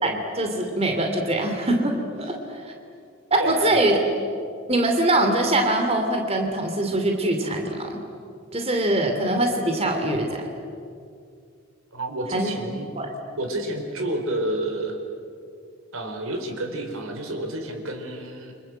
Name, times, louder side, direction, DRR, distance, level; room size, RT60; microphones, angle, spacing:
voice 1, 0.0-2.7 3.3-4.0 4.7-8.0 8.5-10.3 12.3-12.5 13.0-13.1, right 1 dB, 30° right, 3 dB, 2.7 m, -23 dB
voice 2, 3.4-3.8 11.9-12.9 13.4-15.0 15.9-18.5, right 1 dB, 80° right, 4 dB, 4.2 m, -30 dB
29.0 x 25.5 x 8.0 m, 2.4 s
head